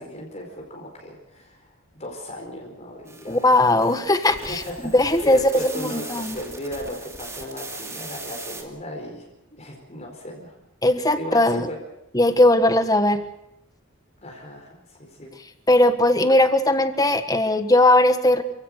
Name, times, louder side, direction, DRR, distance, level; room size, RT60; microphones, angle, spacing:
voice 1, 0.0-1.7 2.0-3.5 4.4-9.3 9.5-10.6 11.2-11.8 14.2-15.3, left 1 dB, 30° left, 0 dB, 4.6 m, -36 dB
sound 1, 3.1-8.6, right 3 dB, 15° right, 2.5 m, -39 dB
voice 2, 3.3-6.4 10.8-11.7 12.1-13.2 15.7-18.4, left 1 dB, 15° left, 9 dB, 1.4 m, -19 dB
29.5 x 16.5 x 6.6 m, 0.86 s
head